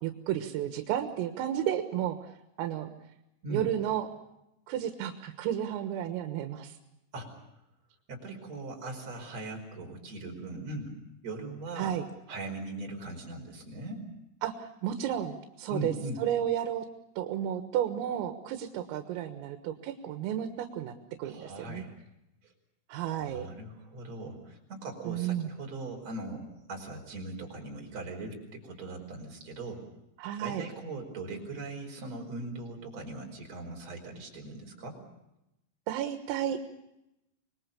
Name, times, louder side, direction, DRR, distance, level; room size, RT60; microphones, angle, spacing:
voice 1, 0.0-2.3 2.6-2.9 3.5-4.1 4.7-6.8 11.8-12.1 14.4-16.9 17.2-21.8 22.9-23.5 25.1-25.5 30.2-30.6 35.9-36.7, right 10 dB, 85° right, 7 dB, 4.0 m, -32 dB
voice 2, 8.1-10.9 11.2-11.9 12.3-14.1 15.7-16.2 21.2-21.9 22.4-22.5 23.2-29.8 30.4-35.0, right 2 dB, 35° right, 2 dB, 5.8 m, -40 dB
26.5 x 21.5 x 6.9 m, 0.89 s
omnidirectional pair, 5.9 m